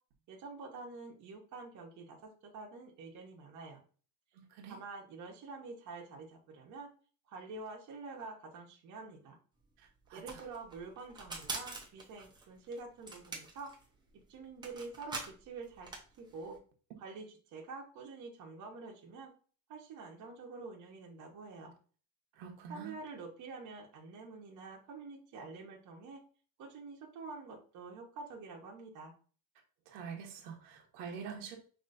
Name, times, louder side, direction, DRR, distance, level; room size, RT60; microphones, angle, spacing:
voice 1, 0.3-3.8 4.6-6.9 7.3-9.4 10.1-13.7 14.3-15.9 16.2-16.6 17.0-17.2 17.5-19.3 19.7-21.7 22.7-26.2 26.6-29.1, right 3 dB, 45° right, 0 dB, 1.0 m, -47 dB
voice 2, 4.3-4.8 9.8-10.5 22.3-23.0 29.9-31.6, right 6 dB, 75° right, 2 dB, 1.1 m, -46 dB
sound 1, 9.6-9.7 9.8-16.6, right 3 dB, 10° right, 0.7 m, -44 dB
5.5 x 2.9 x 2.6 m, 0.41 s
cardioid pair, 140°, 42 cm